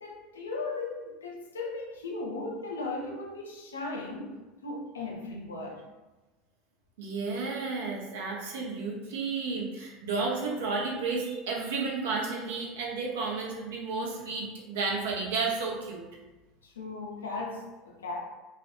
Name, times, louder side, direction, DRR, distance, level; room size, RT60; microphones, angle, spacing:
voice 1, 0.0-4.4 4.6-5.8 16.6-18.2, left 3 dB, 85° left, 0 dB, 0.4 m, -37 dB
voice 2, 7.0-16.0, right 4 dB, 70° right, -2 dB, 0.6 m, -32 dB
2.3 x 2.1 x 2.8 m, 1.1 s
hypercardioid pair, 75°, 0 cm